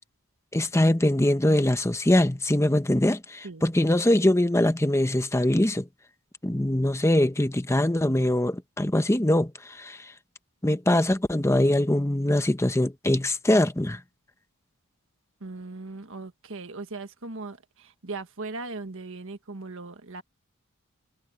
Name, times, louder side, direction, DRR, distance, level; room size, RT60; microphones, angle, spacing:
voice 1, 0.5-5.9 6.4-10.0 10.6-14.0, left 1 dB, 15° left, 0.9 m, -23 dB
voice 2, 15.4-20.2, right 3 dB, 65° right, 1.5 m, -38 dB
head